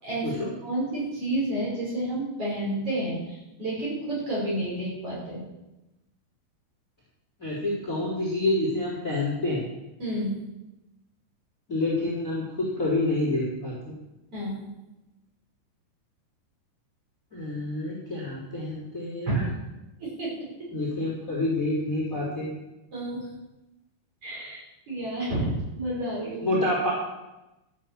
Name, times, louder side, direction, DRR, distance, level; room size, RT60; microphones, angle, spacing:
voice 1, 0.6-5.4 10.0-10.4 14.3-14.6 19.3-19.5 20.0-20.3 20.6-20.7 22.9-23.3 24.2-26.5, right 1 dB, 30° right, -6 dB, 6.3 m, -30 dB
voice 2, 7.4-9.6 11.7-14.0 17.3-19.4 20.7-22.5 26.4-26.9, left 2 dB, 20° left, -6 dB, 3.8 m, -28 dB
14.5 x 8.4 x 7.5 m, 0.99 s
omnidirectional pair, 5.1 m